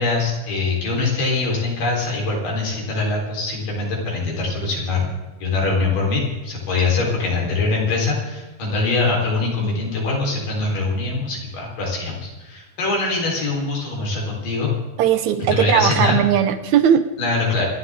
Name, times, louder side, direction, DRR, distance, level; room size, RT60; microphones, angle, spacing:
voice 1, 0.0-5.1 5.4-14.7 15.5-16.1 17.2-17.7, left 3 dB, 85° left, -2 dB, 5.7 m, -23 dB
voice 2, 15.0-17.0, right 9 dB, 70° right, 10 dB, 2.0 m, -18 dB
26.0 x 11.0 x 3.7 m, 1.1 s
omnidirectional pair, 3.7 m